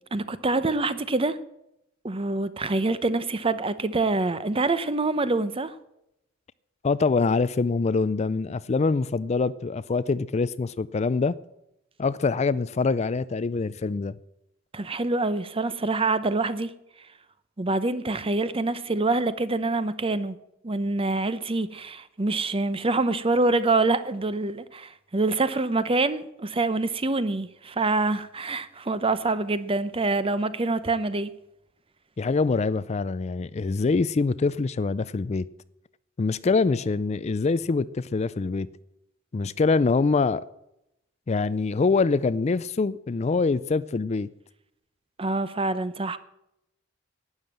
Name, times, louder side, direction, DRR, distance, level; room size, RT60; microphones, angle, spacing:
voice 1, 0.1-1.4 2.0-5.7 14.7-16.7 17.6-20.4 20.6-31.3 45.2-46.2, right 3 dB, 30° right, 0.8 m, -26 dB
voice 2, 6.8-11.4 12.0-14.2 32.2-35.5 36.2-38.7 39.3-40.4 41.3-44.3, left 4 dB, 35° left, 0.4 m, -24 dB
12.0 x 9.6 x 7.4 m
head